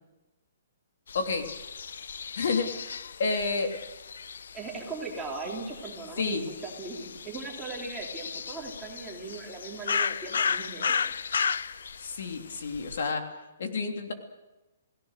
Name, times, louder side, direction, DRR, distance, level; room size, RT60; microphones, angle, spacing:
sound 1, 1.1-13.1, left 6 dB, 75° left, 0.7 m, -35 dB
voice 1, 1.1-1.5 2.4-3.7 6.2-6.5 12.0-13.3 13.6-14.1, left 4 dB, 60° left, 4 dB, 3.2 m, -30 dB
voice 2, 4.5-11.1, right 3 dB, 5° right, -2 dB, 3.3 m, -39 dB
30.0 x 18.0 x 6.6 m, 1.1 s
hypercardioid pair, 175°, 0 cm